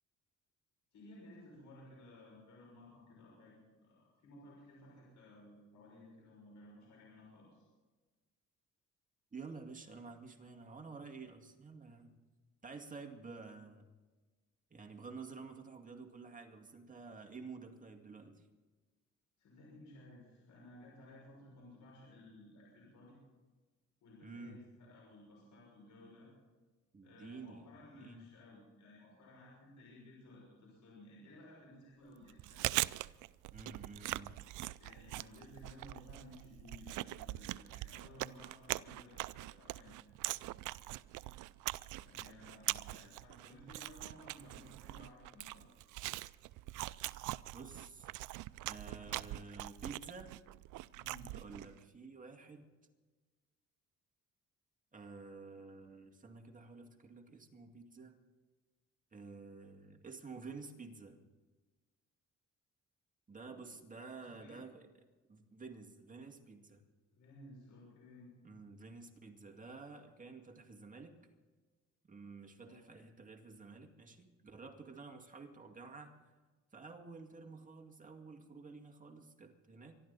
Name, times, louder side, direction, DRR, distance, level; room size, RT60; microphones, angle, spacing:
voice 1, 0.9-7.7 19.4-23.2 24.0-26.3 27.0-32.7 34.8-39.9 42.0-45.7 50.9-51.3 63.4-63.6 64.1-64.6 67.1-68.3 72.6-73.0, left 1 dB, 75° left, -4 dB, 6.3 m, -57 dB
voice 2, 9.3-12.1 12.6-13.9 14.7-18.5 24.2-24.6 26.9-28.3 33.5-34.4 47.5-48.1 48.6-50.3 51.3-52.7 54.9-58.2 59.1-61.2 63.3-64.9 65.3-66.8 68.4-71.2 72.1-76.2 76.7-79.9, right 4 dB, 25° right, 3 dB, 2.2 m, -51 dB
Chewing mastication, 32.3-51.8, right 17 dB, 80° right, 0.5 m, -42 dB
25.0 x 12.0 x 4.1 m, 1.3 s
cardioid pair, 90°, 30 cm